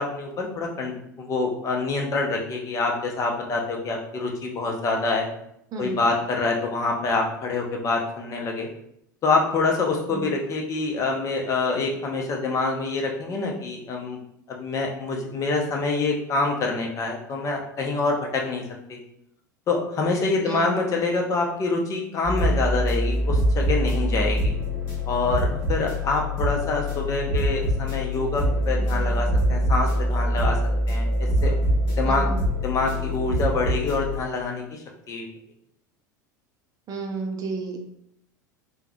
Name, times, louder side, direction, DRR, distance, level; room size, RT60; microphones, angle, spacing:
voice 1, 0.0-5.3 5.8-8.7 9.2-14.2 14.5-18.6 18.9-19.0 19.7-24.5 25.1-30.6 30.9-31.1 31.4-31.5 32.0-32.3 32.6-35.3, left 3 dB, 30° left, 1 dB, 0.6 m, -26 dB
voice 2, 20.4-20.8 32.0-32.4 36.9-37.8, right 4 dB, 35° right, 3 dB, 0.5 m, -31 dB
sound 1, 22.2-34.2, equal, 55° left, 1.4 m, -24 dB
3.4 x 2.2 x 2.3 m, 0.73 s
figure-of-eight pair, 75°, 10 cm